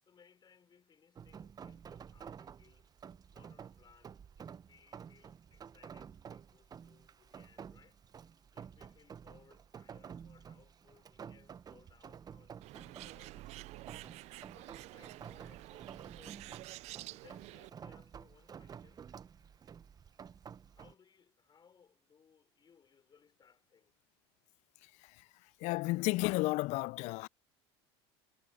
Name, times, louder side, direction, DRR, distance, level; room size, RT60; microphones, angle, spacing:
voice 1, 0.0-2.9 3.3-8.0 8.5-14.0 14.3-16.7 17.1-19.1 20.7-24.0, left 6 dB, 30° left, 5.6 m, -66 dB
Rain, 1.2-20.9, right 7 dB, 30° right, 0.7 m, -51 dB
Bird, 12.6-17.7, right 19 dB, 55° right, 0.4 m, -49 dB
voice 2, 25.6-27.3, left 22 dB, 60° left, 0.5 m, -32 dB
hypercardioid pair, 85°, 14 cm